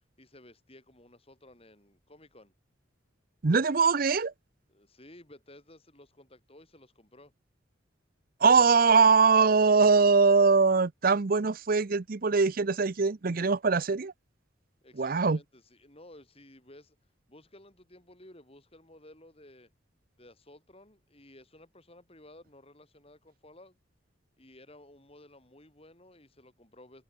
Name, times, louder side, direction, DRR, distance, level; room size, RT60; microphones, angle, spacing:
voice 1, 0.2-2.5 4.7-7.3 14.8-17.0 17.3-19.7 20.2-23.8 24.4-27.0, left 1 dB, 30° left, 5.9 m, -55 dB
voice 2, 3.4-4.3 8.4-14.1 15.0-15.4, right 4 dB, 45° right, 0.6 m, -22 dB
head